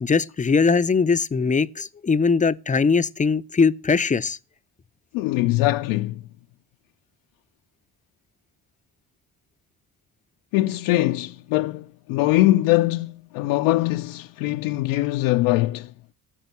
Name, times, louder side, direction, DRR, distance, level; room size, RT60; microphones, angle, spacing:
voice 1, 0.0-4.4, left 5 dB, 15° left, 0.5 m, -21 dB
voice 2, 5.1-6.2 10.5-15.9, left 17 dB, 75° left, 0.5 m, -22 dB
14.5 x 5.6 x 6.8 m
hypercardioid pair, 50°, 46 cm